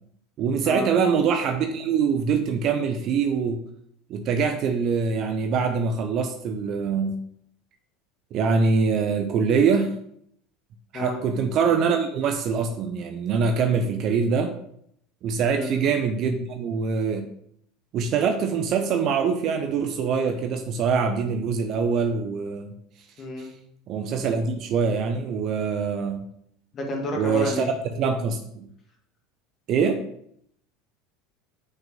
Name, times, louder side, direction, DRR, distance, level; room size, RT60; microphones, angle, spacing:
voice 1, 0.4-3.6 4.1-7.2 8.3-10.0 10.9-14.5 15.2-17.3 17.9-22.7 23.4-23.5 23.9-26.2 27.1-28.7 29.7-30.0, right 5 dB, 45° right, 6 dB, 0.9 m, -24 dB
voice 2, 23.2-23.5 26.7-27.7, left 1 dB, 35° left, 1 dB, 2.3 m, -29 dB
7.8 x 6.1 x 5.1 m, 0.70 s
figure-of-eight pair, 75°, 0 cm